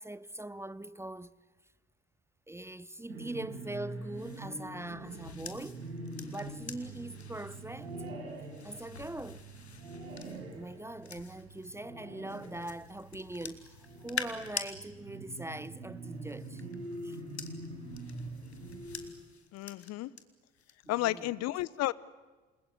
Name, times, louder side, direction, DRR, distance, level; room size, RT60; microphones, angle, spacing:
voice 1, 0.0-1.3 2.5-5.8 6.3-8.0 8.6-9.5 10.4-16.6 17.0-17.2 20.9-21.4, right 1 dB, 10° right, 0.8 m, -42 dB
sound 1, 3.1-19.1, right 2 dB, 75° right, 5.5 m, -44 dB
sound 2, 4.1-11.7 12.3-14.7 16.0-20.2 20.6-20.9, left 5 dB, 85° left, 1.6 m, -46 dB
voice 2, 19.5-20.1 20.9-21.9, left 16 dB, 50° left, 0.9 m, -32 dB
28.0 x 21.0 x 9.9 m
figure-of-eight pair, 50°, 32 cm